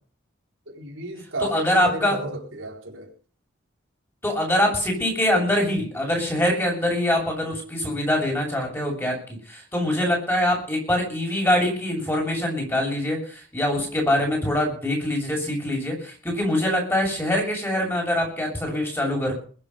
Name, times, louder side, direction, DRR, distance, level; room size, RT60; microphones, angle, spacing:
voice 1, 0.7-3.1, right 2 dB, 80° right, 1 dB, 4.1 m, -32 dB
voice 2, 1.5-2.2 4.2-19.3, left 1 dB, 10° left, 0 dB, 7.2 m, -24 dB
21.0 x 9.2 x 5.7 m, 0.43 s
head